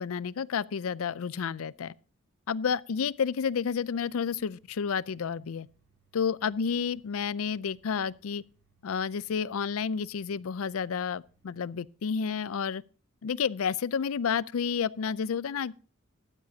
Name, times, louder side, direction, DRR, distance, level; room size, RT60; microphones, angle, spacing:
voice 1, 0.0-1.9 2.5-5.7 6.1-8.4 8.8-12.8 13.2-15.7, left 6 dB, 80° left, 0.4 m, -30 dB
sound 1, 3.4-11.7, right 5 dB, 80° right, 4.6 m, -69 dB
14.5 x 12.0 x 2.8 m
head